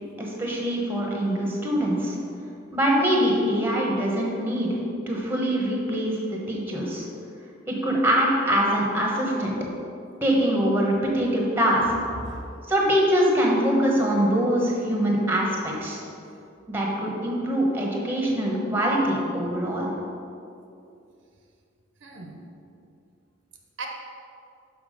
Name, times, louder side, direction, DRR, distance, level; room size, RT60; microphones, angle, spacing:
voice 1, 0.2-2.2 2.7-4.7 5.1-7.1 7.7-9.5 10.2-11.9 12.7-16.0 16.7-19.9, equal, 10° right, -2 dB, 1.0 m, -23 dB
voice 2, 11.8-12.7 22.0-22.4 23.8-23.9, right 2 dB, 65° right, 1 dB, 0.9 m, -38 dB
6.0 x 5.8 x 5.0 m, 2.6 s
head